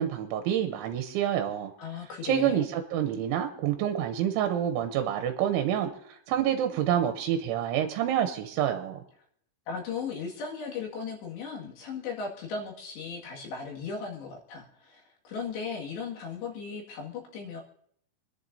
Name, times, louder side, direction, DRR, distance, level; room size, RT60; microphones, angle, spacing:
voice 1, 0.0-1.7 2.2-9.0, right 10 dB, 80° right, 6 dB, 3.1 m, -28 dB
voice 2, 1.8-2.6 9.7-17.6, left 5 dB, 65° left, -1 dB, 4.0 m, -37 dB
27.0 x 10.5 x 2.7 m, 0.67 s
omnidirectional pair, 5.7 m